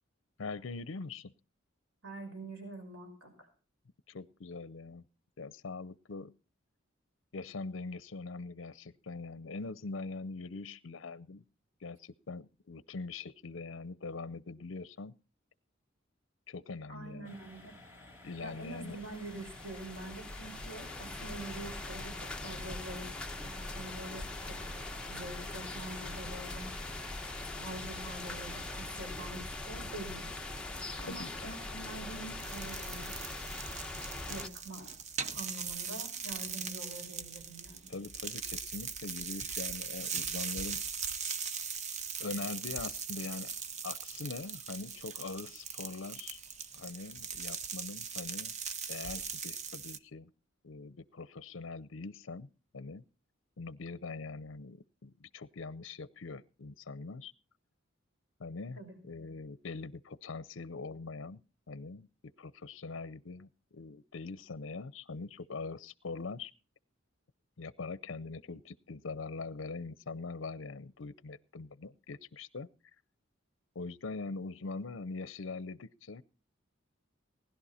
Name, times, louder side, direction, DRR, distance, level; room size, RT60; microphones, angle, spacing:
voice 1, 0.4-1.3 4.1-5.0 5.4-6.3 7.3-11.4 11.8-15.1 16.5-17.4 18.2-19.0 30.8-31.3 37.9-40.8 42.2-43.5 43.8-46.4 46.7-48.5 48.9-50.3 50.6-52.5 52.7-53.0 53.6-57.3 58.4-62.1 62.4-66.5 67.6-72.7 73.7-76.2, left 3 dB, 70° left, 17 dB, 0.6 m, -42 dB
voice 2, 2.0-3.5 16.9-17.7 18.4-24.8 25.1-26.7 27.5-30.3 31.0-33.1 34.3-34.9 35.3-37.9 58.8-59.0, right 2 dB, 80° right, 4 dB, 5.6 m, -46 dB
sound 1, 17.2-29.2, left 2 dB, 15° right, 3.7 m, -54 dB
sound 2, 18.5-34.5, left 2 dB, 5° left, 0.9 m, -42 dB
sound 3, 32.4-50.0, right 6 dB, 35° right, 0.7 m, -40 dB
19.5 x 11.5 x 4.2 m, 0.35 s
head